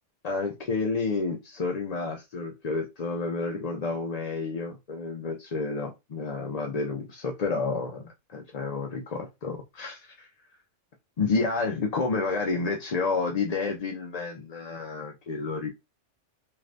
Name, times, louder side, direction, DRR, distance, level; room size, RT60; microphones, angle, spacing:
voice 1, 0.2-10.3 11.2-15.7, left 4 dB, 50° left, 1 dB, 0.5 m, -30 dB
2.5 x 2.5 x 3.2 m, 0.22 s
omnidirectional pair, 1.2 m